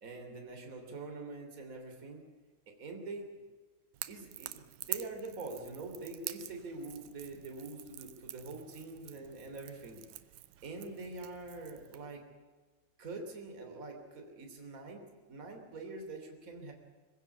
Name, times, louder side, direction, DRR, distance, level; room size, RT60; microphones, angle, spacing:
voice 1, 0.0-2.2 2.8-3.3 4.1-10.0 10.6-12.2 13.0-16.7, right 3 dB, 25° right, 3 dB, 3.2 m, -44 dB
Crackle / Crack, 3.9-12.1, right 15 dB, 75° right, 2.1 m, -46 dB
22.5 x 16.0 x 8.5 m, 1.4 s
omnidirectional pair, 4.2 m